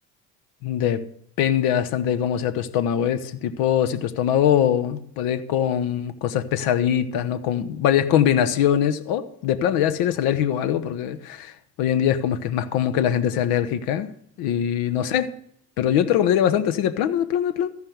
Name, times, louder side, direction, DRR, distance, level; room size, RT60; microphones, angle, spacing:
voice 1, 0.6-1.0 1.4-14.1 14.4-15.3 15.8-17.7, left 10 dB, 80° left, 1.1 m, -22 dB
14.5 x 5.4 x 9.3 m
supercardioid pair, 70°, 36 cm